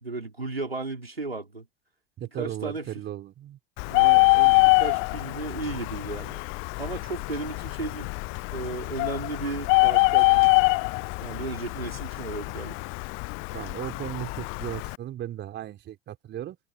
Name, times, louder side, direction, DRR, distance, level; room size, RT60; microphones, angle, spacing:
voice 1, 0.0-1.7 2.3-3.0 3.9-6.4 6.8-8.1 8.5-10.7 11.2-12.8, right 3 dB, 90° right, 4.3 m, -35 dB
voice 2, 2.2-3.6 13.5-16.6, right 12 dB, 40° right, 4.4 m, -36 dB
Bird, 3.8-15.0, left 29 dB, 45° left, 0.7 m, -24 dB
figure-of-eight pair, 75°, 29 cm